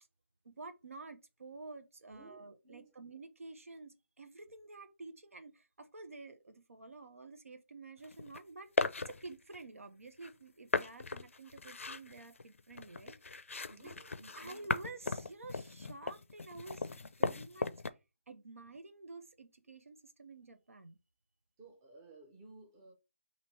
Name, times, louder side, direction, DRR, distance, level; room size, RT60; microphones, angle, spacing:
voice 1, 0.4-14.0 14.3-17.7 18.3-21.0, right 3 dB, 80° right, 0.7 m, -50 dB
voice 2, 2.1-2.9 13.7-14.7 21.6-22.9, right 3 dB, 15° right, 0.6 m, -56 dB
sound 1, 8.0-8.4 8.8-9.6 10.2-10.3 10.7-17.9, left 4 dB, 70° left, 0.5 m, -37 dB
3.0 x 2.8 x 4.2 m
figure-of-eight pair, 165°, 7 cm